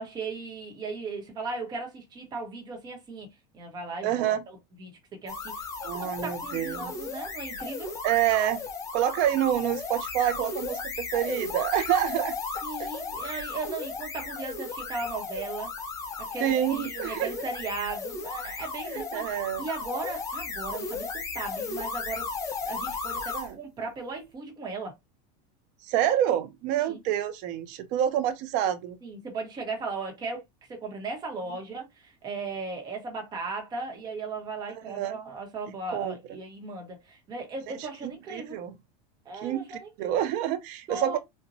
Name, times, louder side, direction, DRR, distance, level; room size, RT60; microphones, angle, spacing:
voice 1, 0.0-3.3 3.5-7.9 12.6-15.7 16.2-22.3 22.6-24.9 26.9-27.0 29.0-30.4 30.7-38.6 39.2-40.2 40.9-41.2, right 3 dB, 20° right, 0.9 m, -37 dB
voice 2, 4.0-4.4 5.8-6.9 8.0-8.6 8.9-12.4 16.4-17.3 18.9-19.7 23.3-23.6 25.8-29.0 34.7-35.2 35.9-36.2 38.0-38.7 39.4-41.2, right 11 dB, 40° right, 0.5 m, -27 dB
sound 1, 5.3-23.5, left 4 dB, 15° left, 0.5 m, -35 dB
4.1 x 2.1 x 2.5 m
supercardioid pair, 165°, 21 cm